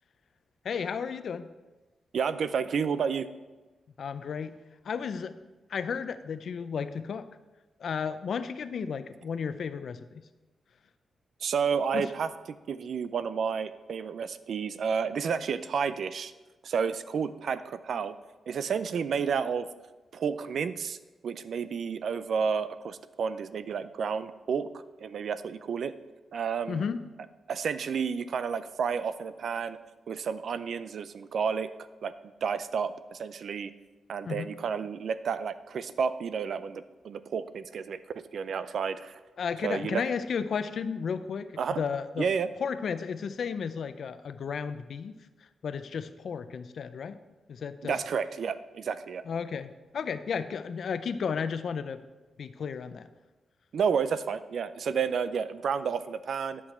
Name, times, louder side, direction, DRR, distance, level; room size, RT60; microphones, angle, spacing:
voice 1, 0.6-1.5 4.0-4.5 4.8-5.3 5.7-7.3 7.8-10.2 11.9-12.1 26.7-27.0 34.2-34.5 39.4-42.3 42.6-45.1 45.6-47.2 47.5-48.0 49.3-52.0 52.4-53.1, left 6 dB, 60° left, 11 dB, 0.5 m, -33 dB
voice 2, 2.1-3.3 11.4-16.3 16.6-18.2 18.5-19.7 20.1-21.0 21.2-25.9 26.3-26.8 27.5-29.8 30.1-31.7 32.0-32.1 32.4-33.7 34.1-39.2 39.6-40.0 41.6-41.8 42.2-42.5 47.8-49.2 53.7-56.6, right 6 dB, 65° right, 13 dB, 0.4 m, -31 dB
10.0 x 6.1 x 4.2 m, 1.2 s
wide cardioid pair, 125°, 0 cm